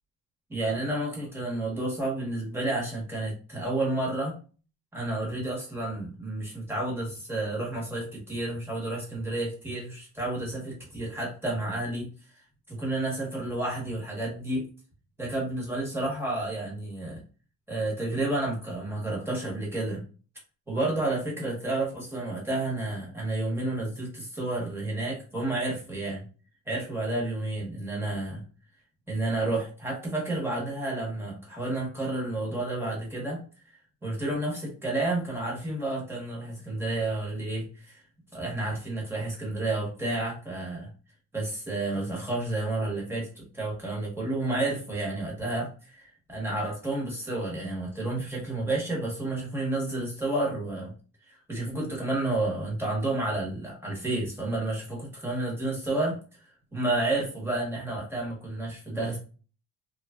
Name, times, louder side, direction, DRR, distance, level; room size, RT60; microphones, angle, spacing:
voice 1, 0.5-4.3 4.9-12.1 12.7-14.6 15.2-17.2 17.7-20.0 20.7-26.2 26.7-28.4 29.1-33.4 34.0-38.0 38.3-40.9 41.3-50.9 51.3-56.2 56.7-59.2, right 2 dB, 5° right, -4 dB, 1.0 m, -30 dB
2.9 x 2.4 x 2.3 m, 0.36 s
cardioid pair, 155°, 34 cm